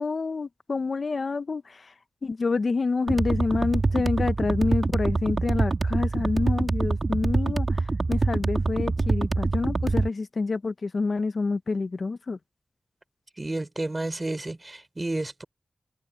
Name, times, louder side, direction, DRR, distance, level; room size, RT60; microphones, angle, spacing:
voice 1, 0.0-1.9 2.2-12.4, left 4 dB, 65° left, 0.8 m, -28 dB
sound 1, 3.1-10.1, right 3 dB, 55° right, 2.0 m, -25 dB
voice 2, 13.4-15.4, right 2 dB, 30° right, 4.7 m, -31 dB
wide cardioid pair, 60°, 0 cm